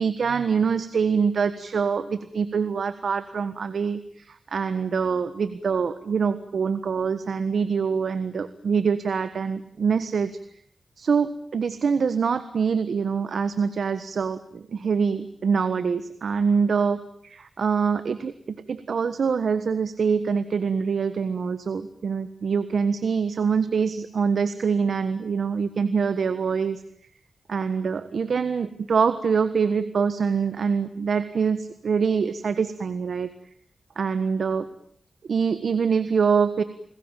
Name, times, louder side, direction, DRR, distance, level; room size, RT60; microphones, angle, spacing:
voice 1, 0.0-10.3 11.0-26.8 27.5-33.3 34.0-34.7 35.3-36.6, right 6 dB, 70° right, 12 dB, 1.4 m, -25 dB
29.5 x 20.5 x 9.1 m, 0.65 s
wide cardioid pair, 85°, 0 cm